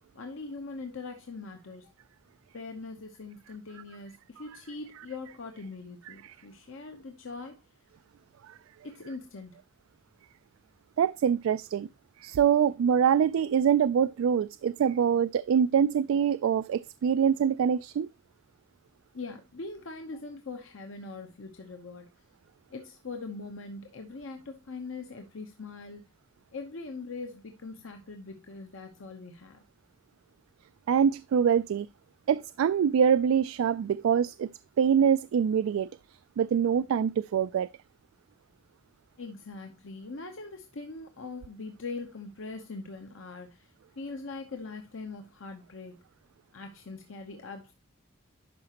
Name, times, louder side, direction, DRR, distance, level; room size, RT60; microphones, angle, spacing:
voice 1, 0.1-1.9 2.5-7.6 8.8-9.6 19.1-22.1 22.7-26.1 26.5-29.6 39.2-46.0 46.5-47.7, left 3 dB, 75° left, 0.9 m, -42 dB
voice 2, 11.0-11.9 12.2-18.1 30.9-31.9 32.3-34.5 34.8-35.9 36.4-37.7, right 7 dB, 90° right, 0.3 m, -24 dB
11.5 x 4.9 x 2.9 m
head